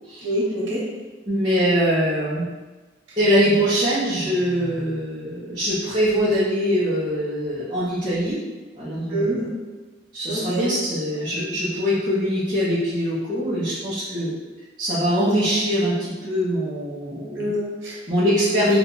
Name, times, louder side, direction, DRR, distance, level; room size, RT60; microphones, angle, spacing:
voice 1, 0.2-0.8 9.1-9.6 10.3-10.8 17.3-18.0 18.5-18.7, equal, 90° right, -4 dB, 0.9 m, -26 dB
voice 2, 1.3-2.4 3.2-8.4 8.8-9.5 10.1-14.3 14.8-17.5 18.1-18.8, equal, 25° right, -12 dB, 0.7 m, -22 dB
2.8 x 2.2 x 3.7 m, 1.3 s
head